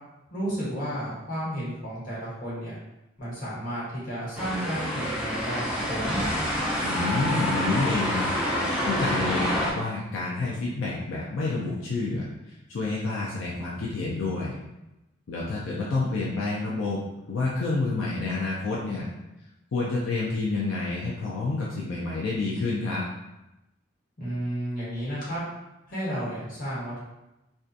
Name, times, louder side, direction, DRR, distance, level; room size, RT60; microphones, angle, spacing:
voice 1, 0.3-2.7 3.2-6.3 24.2-25.4 25.9-27.0, equal, 50° left, -8 dB, 1.2 m, -32 dB
sound 1, 4.3-9.7, equal, 5° right, 0.5 m, -27 dB
voice 2, 6.8-8.3 8.8-12.2 12.7-14.5 15.3-17.0 17.3-19.1 19.7-23.0, left 3 dB, 80° left, -5 dB, 0.4 m, -28 dB
2.6 x 2.2 x 2.4 m, 0.96 s
head